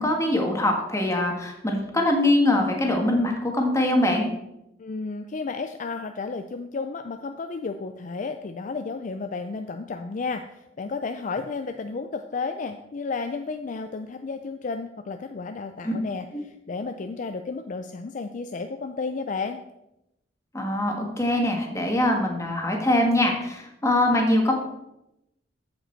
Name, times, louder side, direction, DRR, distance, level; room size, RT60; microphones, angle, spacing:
voice 1, 0.0-4.3 15.8-15.9 20.5-24.5, left 1 dB, 15° left, 2 dB, 1.6 m, -23 dB
voice 2, 4.8-19.6, left 4 dB, 45° left, 7 dB, 0.4 m, -32 dB
14.0 x 5.2 x 4.5 m, 0.88 s
head